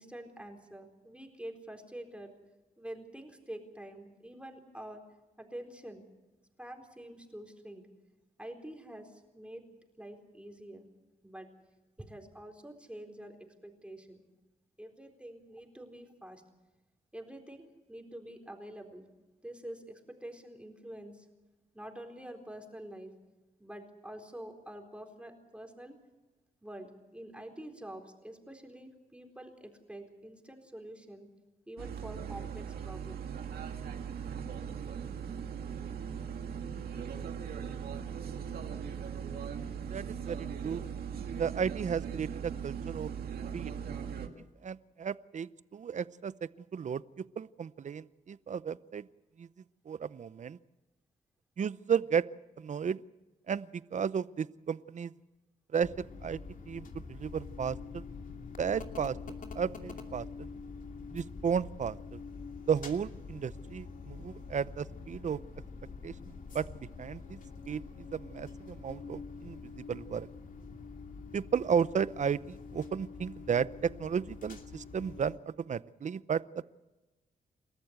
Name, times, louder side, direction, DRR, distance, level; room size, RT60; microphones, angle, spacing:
voice 1, 0.0-2.3 2.8-5.0 5.4-6.0 6.6-7.9 8.4-10.8 11.2-11.5 12.0-14.2 14.8-16.4 17.1-19.1 19.4-21.3 21.7-23.1 23.6-25.9 26.6-31.3 31.7-33.3, right 1 dB, 5° right, 3 dB, 4.1 m, -47 dB
sound 1, 31.8-44.3, right 7 dB, 85° right, 2.0 m, -39 dB
voice 2, 39.9-40.8 41.4-43.1 43.5-43.7 44.6-46.3 46.7-49.1 49.4-49.5 49.9-50.6 51.6-52.2 52.6-53.0 53.5-55.1 55.7-56.4 56.7-58.0 58.6-59.2 59.6-60.3 61.1-62.2 62.7-65.4 66.0-66.1 66.5-66.6 67.0-67.4 67.7-67.8 68.1-70.3 71.3-76.4, right 7 dB, 50° right, 17 dB, 0.7 m, -33 dB
sound 2, 55.8-75.4, left 4 dB, 60° left, 2.6 m, -46 dB
29.0 x 13.5 x 8.1 m, 1.1 s
cardioid pair, 85°, 16 cm